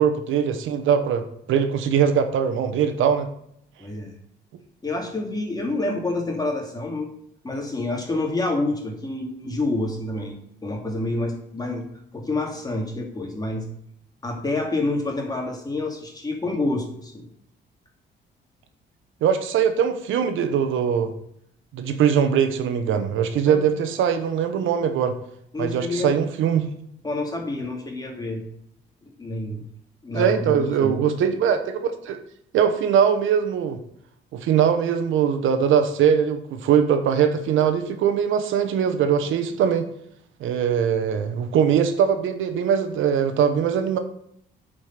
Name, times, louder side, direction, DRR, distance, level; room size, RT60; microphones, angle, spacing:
voice 1, 0.0-3.3 19.2-21.1 21.7-25.1 25.6-26.7 30.1-32.2 32.5-33.8 34.3-39.9 40.4-44.0, right 8 dB, 80° right, 8 dB, 1.0 m, -21 dB
voice 2, 3.8-4.1 4.8-7.1 7.4-10.3 10.6-11.8 12.1-13.7 14.2-17.3 23.4-23.7 25.5-26.2 27.0-28.4 29.2-29.6 30.0-31.0, left 2 dB, 20° left, 2 dB, 2.5 m, -28 dB
8.8 x 5.2 x 5.8 m, 0.72 s
cardioid pair, 90°, 20 cm